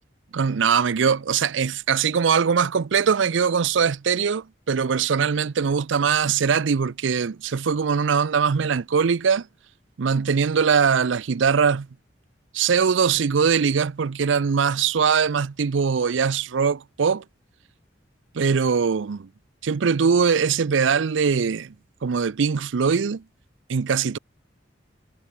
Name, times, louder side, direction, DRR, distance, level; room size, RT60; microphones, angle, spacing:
voice 1, 0.3-9.5 10.0-11.9 12.5-17.2 18.3-19.3 19.6-21.7 22.0-23.2 23.7-24.2, right 6 dB, 75° right, 0.5 m, -21 dB
head